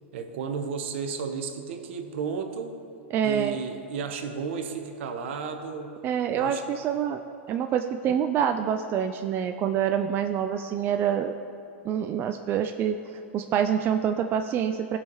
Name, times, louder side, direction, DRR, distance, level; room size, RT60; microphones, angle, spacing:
voice 1, 0.1-2.8 3.2-5.9 6.3-6.6, right 5 dB, 65° right, 6 dB, 1.0 m, -33 dB
voice 2, 3.1-3.6 6.0-7.2 7.5-11.4 11.8-15.0, right 8 dB, 30° right, 7 dB, 0.4 m, -26 dB
16.5 x 5.6 x 3.1 m, 2.7 s
hypercardioid pair, 105°, 7 cm